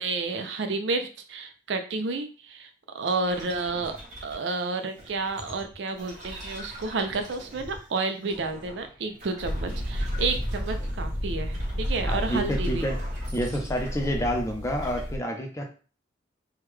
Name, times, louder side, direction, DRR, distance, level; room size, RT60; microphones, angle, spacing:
voice 1, 0.0-2.7 2.9-4.0 4.2-12.9, right 3 dB, 75° right, 7 dB, 0.5 m, -30 dB
sound 1, 3.3-4.5 5.0-7.9 8.2-11.2 11.5-14.5 14.8-15.1, equal, 40° right, 1.2 m, -44 dB
sound 2, 9.4-15.2, equal, 60° left, 1.0 m, -31 dB
voice 2, 12.0-13.0 13.3-15.7, equal, 15° left, 2 dB, 0.6 m, -29 dB
3.5 x 2.2 x 3.2 m, 0.36 s
head